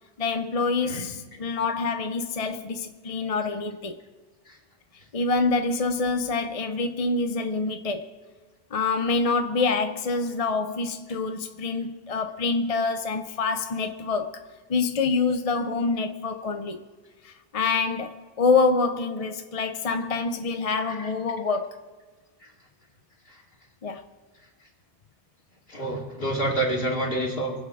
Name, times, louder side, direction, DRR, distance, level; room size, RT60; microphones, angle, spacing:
voice 1, 0.2-4.0 5.1-8.1 8.7-14.4 14.7-16.8 17.2-21.8 23.8-24.0, left 4 dB, 40° left, 0.7 m, -26 dB
voice 2, 25.7-27.5, right 1 dB, 65° left, 2.7 m, -27 dB
24.5 x 8.1 x 4.8 m
omnidirectional pair, 1.1 m